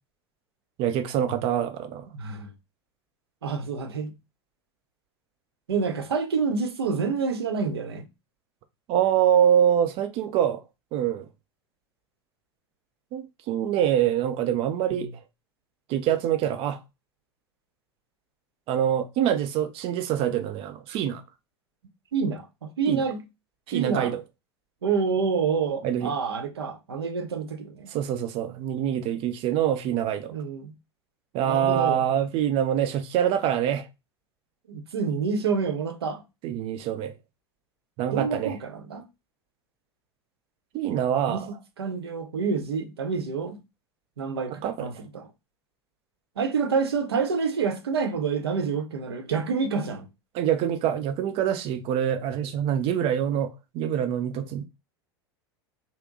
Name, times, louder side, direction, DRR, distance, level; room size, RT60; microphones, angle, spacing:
voice 1, 0.8-2.1 8.9-10.6 10.9-11.3 13.1-15.1 15.9-16.8 18.7-21.2 22.9-23.0 23.7-24.2 25.8-26.1 27.9-30.3 31.3-33.9 36.4-37.1 38.0-38.5 40.7-41.5 44.5-45.0 50.3-54.7, right 10 dB, 45° right, 0.8 m, -25 dB
voice 2, 2.1-2.5 3.4-4.1 5.7-8.0 22.1-23.2 23.7-24.2 24.8-27.9 30.3-30.7 31.4-32.0 34.7-36.2 38.1-39.0 41.2-41.4 41.8-43.6 44.2-45.3 46.4-50.1, right 5 dB, 70° right, 1.0 m, -28 dB
5.7 x 2.3 x 3.7 m
figure-of-eight pair, 80°, 14 cm